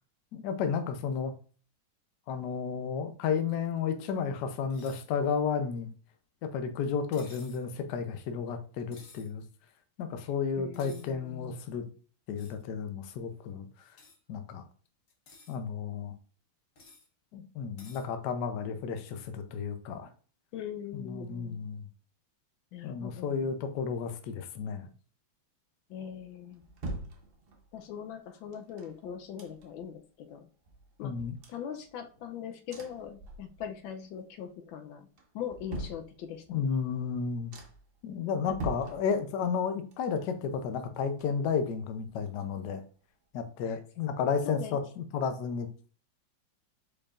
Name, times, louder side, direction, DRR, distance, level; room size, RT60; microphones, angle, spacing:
voice 1, 0.3-1.3 2.3-5.9 6.4-9.4 10.0-11.8 12.3-13.7 14.3-14.6 15.5-16.1 17.3-20.1 20.9-21.8 22.8-24.9 31.0-31.4 36.5-37.5 38.0-42.8 43.3-45.7, left 6 dB, 70° left, 8 dB, 1.1 m, -32 dB
sound 1, 4.7-5.1 7.1-7.6 8.9-9.3 10.7-11.1 12.4-12.6 14.0-14.2 15.1-15.6 16.8-17.1 17.8-18.1, left 3 dB, 50° left, 1.2 m, -54 dB
voice 2, 10.6-11.6 20.5-21.6 22.7-23.5 25.9-26.6 27.7-30.5 31.0-31.1 31.5-35.1 35.3-36.7 43.7-43.8 44.4-44.8, left 8 dB, 85° left, 7 dB, 1.4 m, -41 dB
sound 2, 26.1-27.8 28.5-30.0 30.3-30.4 30.7-32.3 32.7-33.9 34.2-34.7 35.1-36.6 37.1-37.2 37.5-38.0 38.4-39.6 39.9-41.7 42.0-42.1, right 2 dB, 50° right, 0.7 m, -44 dB
4.7 x 4.7 x 2.4 m, 0.40 s
omnidirectional pair, 2.1 m